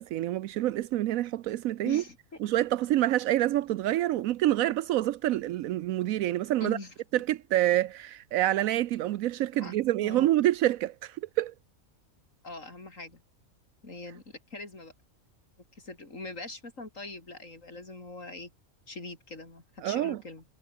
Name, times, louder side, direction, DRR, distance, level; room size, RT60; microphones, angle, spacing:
voice 1, 0.0-2.0 2.4-6.8 7.1-11.5 19.8-20.2, right 14 dB, 80° right, 1.0 m, -27 dB
voice 2, 1.8-2.4 6.6-6.9 9.6-10.3 12.4-13.2 13.8-14.9 15.7-18.5 18.9-20.4, left 2 dB, 65° left, 4.7 m, -42 dB
omnidirectional pair, 1.4 m